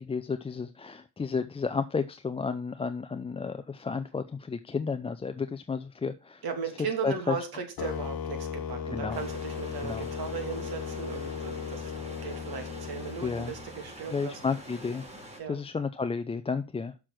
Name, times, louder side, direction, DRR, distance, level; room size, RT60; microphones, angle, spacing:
voice 1, 0.0-6.4 7.0-7.4 8.9-9.2 9.8-10.1 13.2-13.5 14.1-15.1 15.5-17.0, left 5 dB, 15° left, 0.4 m, -32 dB
voice 2, 6.4-11.9 12.2-14.4 15.4-15.6, right 6 dB, 55° right, 2.7 m, -37 dB
sound 1, 7.8-13.9, left 7 dB, 55° left, 1.2 m, -36 dB
sound 2, 9.1-15.4, right 1 dB, 15° right, 3.7 m, -46 dB
6.6 x 6.0 x 6.1 m
cardioid pair, 100°, 43 cm